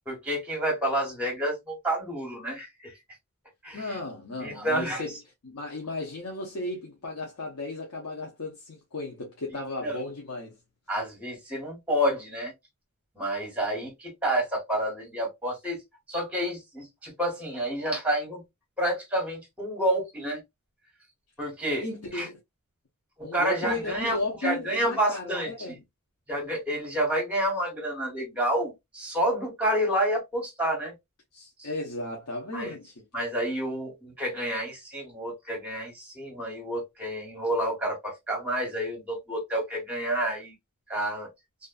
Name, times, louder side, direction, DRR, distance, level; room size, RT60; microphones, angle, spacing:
voice 1, 0.1-2.9 3.6-3.9 4.4-5.0 9.8-9.9 10.9-12.5 13.2-15.8 16.1-18.4 18.8-20.4 21.4-21.8 22.1-22.3 23.2-24.2 24.4-25.8 26.3-30.9 31.6-31.7 32.5-32.7 33.1-40.5 40.9-41.3, right 1 dB, 5° right, 1.2 m, -29 dB
voice 2, 3.7-10.6 21.8-22.4 23.2-25.8 31.3-33.0, left 2 dB, 80° left, 0.7 m, -35 dB
2.5 x 2.4 x 2.3 m
head